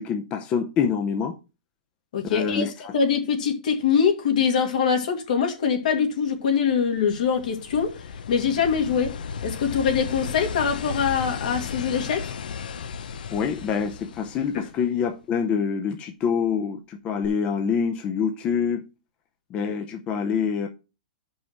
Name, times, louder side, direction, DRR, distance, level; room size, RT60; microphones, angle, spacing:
voice 1, 0.0-1.3 2.2-2.9 13.3-18.9 19.5-20.7, left 6 dB, 25° left, 0.6 m, -26 dB
voice 2, 2.1-2.7 2.9-8.0 8.3-9.2 9.4-12.3, left 6 dB, 70° left, 2.2 m, -23 dB
sound 1, 6.6-15.1 17.2-17.3, left 6 dB, 85° left, 0.7 m, -35 dB
5.9 x 5.5 x 6.7 m
hypercardioid pair, 155°, 5 cm